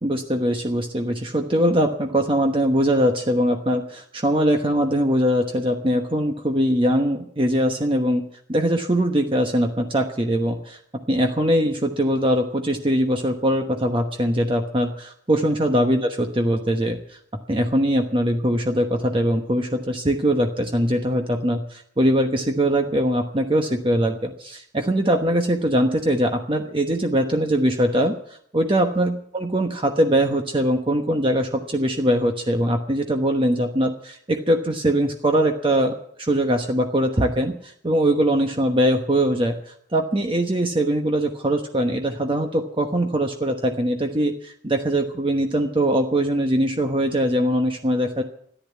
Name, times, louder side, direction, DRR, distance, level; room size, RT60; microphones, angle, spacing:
voice 1, 0.0-8.2 8.5-10.8 11.1-17.0 17.5-28.1 28.5-48.2, equal, 30° right, 4 dB, 1.1 m, -22 dB
14.5 x 10.5 x 8.3 m, 0.65 s
head